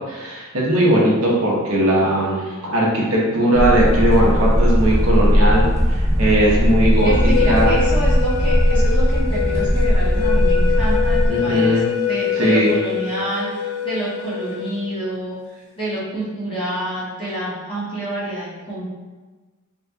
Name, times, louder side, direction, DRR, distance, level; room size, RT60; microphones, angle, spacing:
voice 1, 0.1-7.8 11.3-11.9 12.4-12.8, right 1 dB, 75° right, -4 dB, 0.9 m, -18 dB
sound 1, 3.5-11.3, equal, 15° right, 0.4 m, -17 dB
sound 2, 7.0-14.8, left 9 dB, 85° left, 0.5 m, -25 dB
voice 2, 7.0-11.8 12.1-18.8, right 1 dB, 25° left, -10 dB, 1.5 m, -27 dB
4.1 x 3.6 x 2.3 m, 1.3 s
head